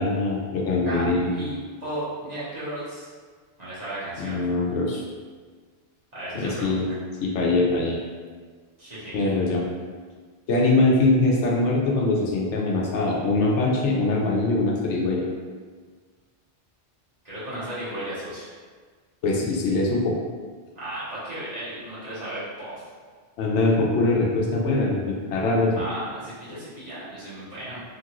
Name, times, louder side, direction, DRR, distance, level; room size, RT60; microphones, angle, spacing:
voice 1, 0.0-1.3 4.2-5.0 6.4-6.9 7.2-8.0 9.1-9.6 10.5-15.3 19.2-20.2 23.4-25.7, left 2 dB, 80° left, -2 dB, 0.9 m, -22 dB
voice 2, 0.8-3.1 3.6-4.4 6.1-6.9 8.8-9.3 17.2-18.5 20.7-22.8 25.8-27.8, right 1 dB, 40° right, -11 dB, 1.1 m, -35 dB
2.9 x 2.4 x 2.9 m, 1.5 s
omnidirectional pair, 1.2 m